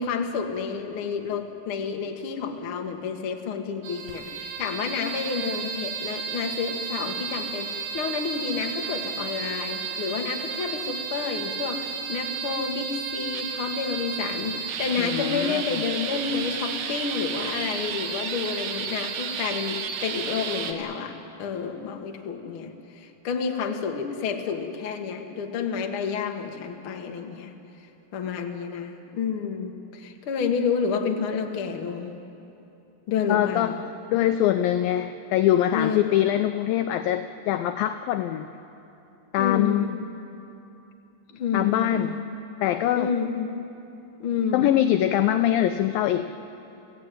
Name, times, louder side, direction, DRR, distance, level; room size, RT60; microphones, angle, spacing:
voice 1, 0.0-27.5 28.1-32.2 33.1-33.8 35.7-36.1 39.4-40.0 41.3-42.2 42.9-43.5 44.2-44.7, left 6 dB, 60° left, 3 dB, 1.4 m, -30 dB
sound 1, 3.8-20.7, right 6 dB, 70° right, 3.0 m, -32 dB
voice 2, 15.0-15.6 33.3-33.7 34.1-38.5 39.3-39.9 41.5-42.2 42.6-43.1 44.5-46.3, left 12 dB, 80° left, 8 dB, 2.1 m, -23 dB
28.0 x 16.0 x 9.1 m, 2.9 s
omnidirectional pair, 4.8 m